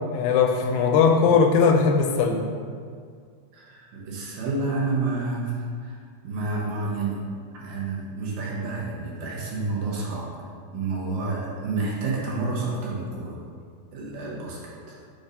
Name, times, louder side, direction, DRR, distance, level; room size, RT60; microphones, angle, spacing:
voice 1, 0.0-2.5, left 5 dB, 85° left, 4 dB, 2.3 m, -19 dB
voice 2, 3.5-7.2 7.5-10.3 10.7-13.4 13.9-14.6 14.9-15.0, right 3 dB, 85° right, -4 dB, 2.8 m, -29 dB
6.8 x 2.6 x 5.3 m, 2.1 s
omnidirectional pair, 4.0 m